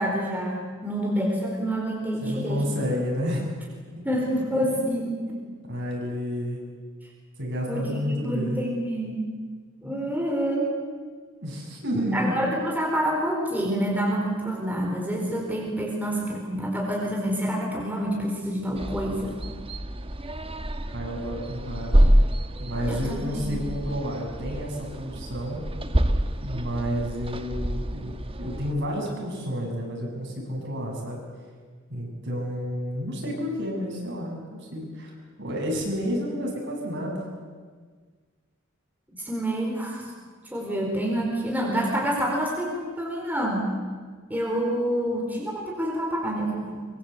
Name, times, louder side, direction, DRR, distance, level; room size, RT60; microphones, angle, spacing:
voice 1, 0.0-2.6 4.0-5.1 7.7-9.3 9.8-10.7 11.9-19.3 22.9-23.5 39.2-40.1 40.5-43.7 44.3-46.8, equal, 10° right, -2 dB, 4.4 m, -27 dB
voice 2, 2.2-3.5 4.8-4.9 5.3-6.6 7.4-8.6 11.4-12.4 20.9-22.1 22.6-25.6 26.4-31.2 31.9-35.1 35.4-37.2, equal, 60° right, 0 dB, 7.2 m, -30 dB
sound 1, 18.7-28.7, equal, 25° right, 1.1 m, -27 dB
24.0 x 24.0 x 8.2 m, 1.6 s
head